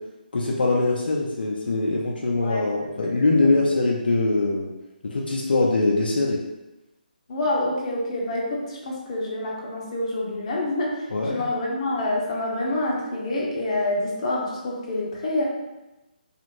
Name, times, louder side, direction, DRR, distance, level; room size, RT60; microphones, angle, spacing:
voice 1, 0.3-4.7 5.0-6.4 11.1-11.4, left 2 dB, 75° left, -2 dB, 0.5 m, -22 dB
voice 2, 2.4-3.1 3.4-3.5 7.3-15.4, left 1 dB, 40° left, -3 dB, 0.8 m, -27 dB
2.5 x 2.5 x 3.0 m, 1.0 s
figure-of-eight pair, 150°, 5 cm